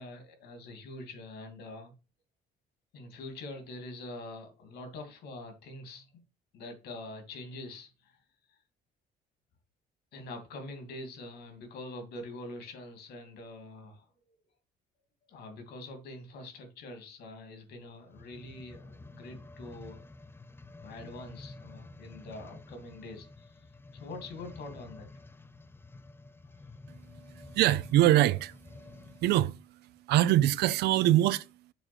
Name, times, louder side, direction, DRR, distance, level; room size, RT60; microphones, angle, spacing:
voice 1, 0.0-1.9 2.9-6.1 6.5-8.2 8.5-8.6 10.1-14.0 15.3-20.0 20.8-23.7 23.9-25.1, left 2 dB, 75° left, 2.9 m, -44 dB
sound 1, 18.0-29.4 30.0-30.1, left 2 dB, 15° left, 0.6 m, -50 dB
voice 2, 26.9-28.6 28.9-31.5, right 14 dB, 75° right, 0.5 m, -25 dB
7.0 x 3.7 x 6.3 m
cardioid pair, 110°, 17 cm